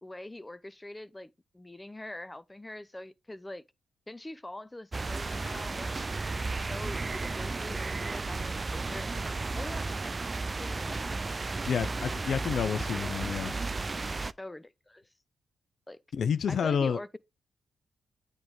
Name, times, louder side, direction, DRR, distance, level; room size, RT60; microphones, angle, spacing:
voice 1, 0.0-3.6 4.1-5.9 6.5-9.1 9.5-9.9 10.5-11.1 14.1-15.1 15.9-16.0 16.5-17.1, left 1 dB, 15° left, 0.5 m, -43 dB
sound 1, 4.9-14.3, right 3 dB, 35° right, 0.3 m, -34 dB
voice 2, 11.7-13.5 16.1-17.0, left 7 dB, 70° left, 0.3 m, -29 dB
8.6 x 3.1 x 3.7 m
supercardioid pair, 50°, 0 cm